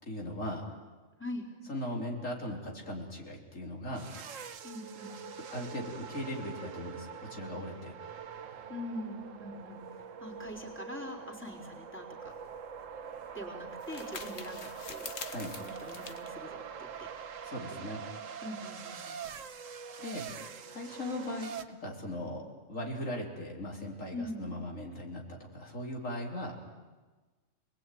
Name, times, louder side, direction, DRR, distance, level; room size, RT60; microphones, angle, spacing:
voice 1, 0.0-0.6 1.7-4.1 5.5-7.9 15.3-15.5 17.5-18.0 20.0-20.3 20.7-22.4 22.7-26.6, left 1 dB, 85° left, -1 dB, 4.2 m, -38 dB
sound 1, 3.9-21.6, right 7 dB, 85° right, 1.5 m, -44 dB
voice 2, 4.6-5.1 8.7-9.8 10.2-12.3 13.3-15.1 15.6-17.1 17.6-18.0 18.4-19.2 24.1-24.5, left 1 dB, 10° left, 0 dB, 4.1 m, -43 dB
sound 2, 12.3-17.5, left 5 dB, 60° left, 1.6 m, -47 dB
27.5 x 20.5 x 9.4 m, 1.3 s
omnidirectional pair, 1.3 m